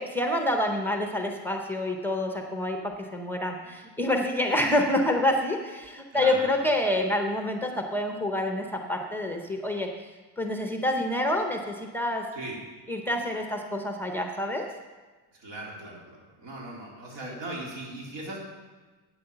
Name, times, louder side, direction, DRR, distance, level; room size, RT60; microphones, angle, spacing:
voice 1, 0.0-9.9 10.4-12.2 12.9-14.7 17.2-17.3, left 1 dB, 5° left, 3 dB, 0.6 m, -27 dB
voice 2, 6.1-6.9 12.3-12.6 15.4-18.4, right 2 dB, 80° right, -3 dB, 3.5 m, -39 dB
8.7 x 8.4 x 6.8 m, 1.3 s
cardioid pair, 180°, 41 cm